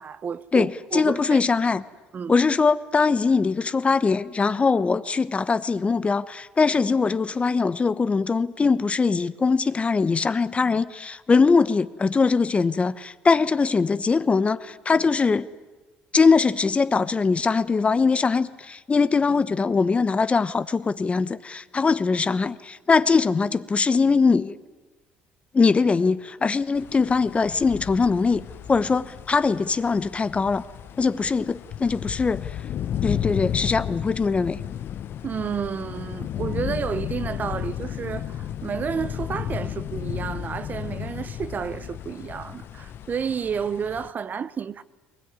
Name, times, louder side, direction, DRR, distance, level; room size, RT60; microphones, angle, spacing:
voice 1, 0.0-1.4 2.1-2.3 35.2-44.8, right 7 dB, 40° right, 0.8 m, -31 dB
voice 2, 0.5-1.8 2.3-15.5 16.1-24.6 25.5-30.6 31.0-32.6 33.0-34.6, left 4 dB, 25° left, 0.9 m, -22 dB
sound 1, 26.8-44.1, left 10 dB, 55° left, 0.8 m, -33 dB
22.0 x 20.0 x 9.8 m
supercardioid pair, 75°, 4 cm